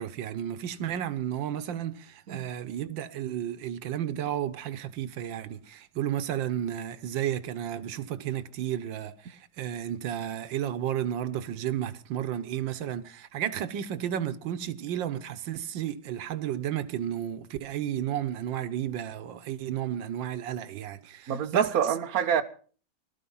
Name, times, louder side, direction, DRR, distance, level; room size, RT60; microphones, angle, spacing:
voice 1, 0.0-21.7, right 10 dB, 90° right, 1.7 m, -32 dB
voice 2, 21.3-22.4, right 8 dB, 55° right, 1.6 m, -26 dB
19.0 x 13.0 x 5.6 m
omnidirectional pair, 2.0 m